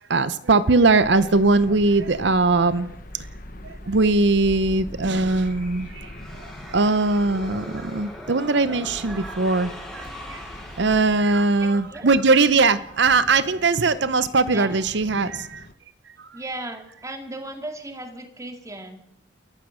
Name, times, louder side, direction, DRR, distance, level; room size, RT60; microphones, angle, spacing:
voice 1, 0.1-3.3 3.6-6.1 6.7-10.4 10.8-15.6, right 3 dB, 60° right, 15 dB, 0.7 m, -20 dB
sound 1, 1.0-15.7, left 1 dB, 45° left, 1.3 m, -43 dB
sound 2, 4.3-11.5, equal, ahead, 5.8 m, -40 dB
voice 2, 11.6-12.1 14.5-14.8 16.3-19.0, right 1 dB, 15° right, 5 dB, 2.2 m, -36 dB
28.0 x 15.0 x 6.3 m, 0.79 s
head